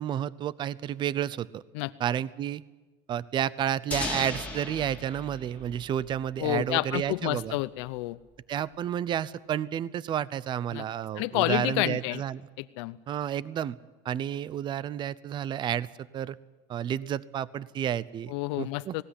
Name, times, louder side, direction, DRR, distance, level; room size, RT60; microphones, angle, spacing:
voice 1, 0.0-1.6 2.0-2.6 3.1-7.6 8.5-12.5 13.1-13.8 14.0-16.4 16.7-19.0, right 10 dB, 35° right, 19 dB, 0.7 m, -31 dB
sound 1, 3.9-6.7, left 3 dB, 10° left, 3.0 m, -37 dB
voice 2, 6.4-8.2 10.7-10.8 11.2-12.2 12.6-13.0 18.3-19.0, left 18 dB, 80° left, 13 dB, 0.7 m, -29 dB
19.0 x 17.5 x 9.9 m, 1.2 s
cardioid pair, 140°, 14 cm